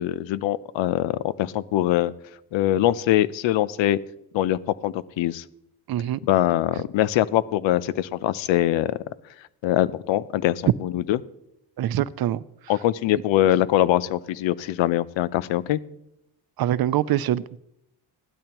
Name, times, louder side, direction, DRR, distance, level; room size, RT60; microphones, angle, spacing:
voice 1, 0.0-2.1 2.5-4.0 4.3-5.4 6.2-9.0 9.6-11.2 12.7-15.8, left 13 dB, 85° left, 18 dB, 0.7 m, -23 dB
voice 2, 5.9-6.2 11.8-12.4 16.6-17.6, right 12 dB, 55° right, 18 dB, 0.5 m, -24 dB
17.0 x 12.5 x 3.0 m, 0.82 s
cardioid pair, 115°, 44 cm